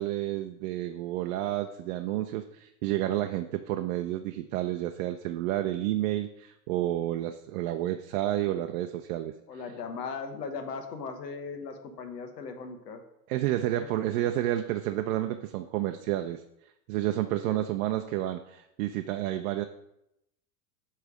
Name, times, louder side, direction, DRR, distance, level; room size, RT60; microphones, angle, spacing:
voice 1, 0.0-9.3 13.3-16.4 16.9-19.6, right 13 dB, 60° right, 7 dB, 0.6 m, -30 dB
voice 2, 9.5-13.0 17.5-17.7, left 5 dB, 80° left, 5 dB, 1.2 m, -38 dB
8.0 x 3.4 x 4.8 m, 0.83 s
hypercardioid pair, 95°, 48 cm